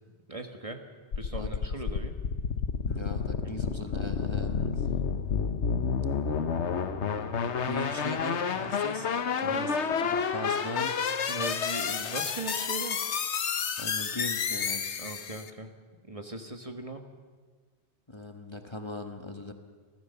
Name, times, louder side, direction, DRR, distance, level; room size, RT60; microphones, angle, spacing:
voice 1, 0.3-0.8 1.2-2.1 3.4-3.5 9.4-10.1 11.3-13.0 15.0-15.7 16.0-17.0, right 2 dB, 30° right, 5 dB, 1.5 m, -39 dB
sound 1, 1.1-15.5, left 6 dB, 85° left, 1.3 m, -30 dB
voice 2, 2.9-4.9 7.7-9.1 9.4-9.8 10.1-11.0 13.8-14.8 18.1-19.5, left 1 dB, 25° left, 5 dB, 1.4 m, -38 dB
30.0 x 14.0 x 6.9 m, 1.5 s
omnidirectional pair, 1.1 m